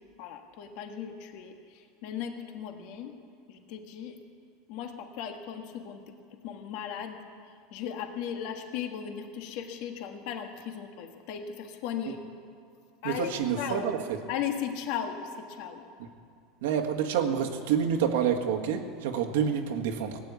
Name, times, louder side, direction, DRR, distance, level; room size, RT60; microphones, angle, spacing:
voice 1, 0.2-1.5 2.0-3.1 3.5-4.1 4.7-6.0 6.4-7.2 7.7-12.2 13.0-13.8 14.3-15.2 15.6-15.8, left 8 dB, 60° left, 5 dB, 1.5 m, -36 dB
voice 2, 13.0-14.2 16.0-16.1 16.6-20.2, right 8 dB, 85° right, 3 dB, 1.6 m, -28 dB
18.0 x 9.6 x 8.3 m, 2.4 s
supercardioid pair, 140°, 0 cm